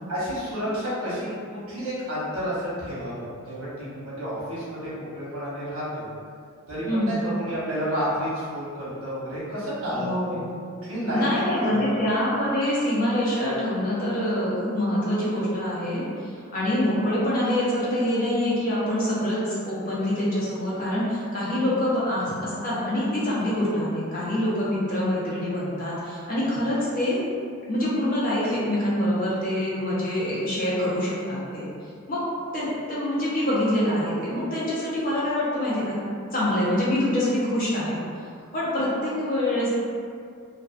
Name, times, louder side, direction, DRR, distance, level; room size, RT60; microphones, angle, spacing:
voice 1, 0.1-6.1 6.7-10.3 10.8-12.0, equal, 75° right, -9 dB, 0.9 m, -30 dB
voice 2, 6.9-7.2 9.9-10.5 11.1-27.2 27.7-31.7 32.1-32.2 32.5-36.0 36.3-38.0 38.5-39.7, left 1 dB, 40° left, -8 dB, 0.6 m, -25 dB
2.4 x 2.3 x 2.3 m, 2.3 s
head